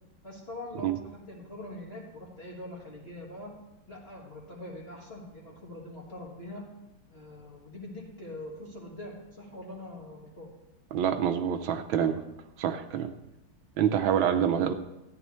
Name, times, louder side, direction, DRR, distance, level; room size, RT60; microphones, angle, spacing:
voice 1, 0.2-3.5 3.9-6.7 7.1-10.5, left 1 dB, 30° left, -4 dB, 1.7 m, -43 dB
voice 2, 10.9-12.2 12.6-13.1 13.8-14.7, right 9 dB, 80° right, 8 dB, 1.4 m, -26 dB
14.0 x 10.0 x 3.1 m, 0.95 s
omnidirectional pair, 2.2 m